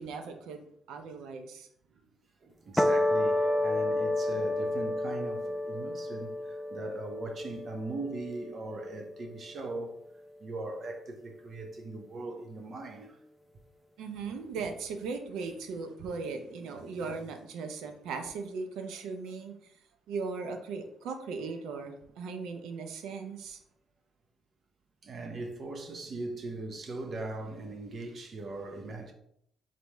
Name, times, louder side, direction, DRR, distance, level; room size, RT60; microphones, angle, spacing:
voice 1, 0.0-1.7 14.0-19.6 20.1-23.6, right 4 dB, 90° right, 0.6 m, -38 dB
voice 2, 2.4-9.9 10.4-13.1 25.0-29.1, right 2 dB, 50° right, 0.7 m, -39 dB
sound 1, 2.8-9.3, left 1 dB, 5° left, 0.4 m, -30 dB
4.1 x 3.1 x 3.4 m
cardioid pair, 90°, 0 cm